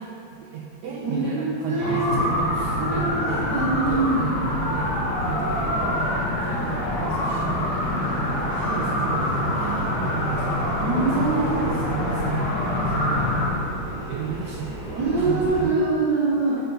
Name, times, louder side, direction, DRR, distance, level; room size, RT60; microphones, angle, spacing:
voice 1, 0.0-3.5 3.9-4.9 5.2-10.5 11.1-11.3 11.6-13.3 14.1-15.8, right 6 dB, 80° right, -3 dB, 0.9 m, -34 dB
voice 2, 1.0-2.2 2.8-4.2 10.8-11.6 15.0-16.6, right 3 dB, 60° right, -10 dB, 1.5 m, -24 dB
sound 1, 1.8-13.5, left 1 dB, 70° left, 1.6 m, -26 dB
sound 2, 2.1-15.6, right 2 dB, 35° right, 1.7 m, -34 dB
sound 3, 2.6-11.5, left 2 dB, 90° left, 1.7 m, -43 dB
5.6 x 5.5 x 3.8 m, 2.9 s
omnidirectional pair, 2.4 m